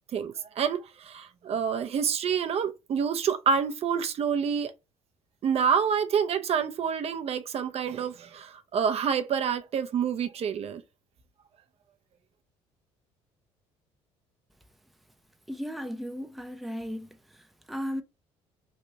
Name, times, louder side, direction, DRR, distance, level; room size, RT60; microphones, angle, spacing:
voice 1, 0.1-4.7 5.4-10.8, right 7 dB, 50° right, 0.6 m, -28 dB
voice 2, 15.5-17.1 17.7-18.0, equal, ahead, 0.5 m, -35 dB
3.1 x 2.5 x 2.8 m
supercardioid pair, 75°, 13 cm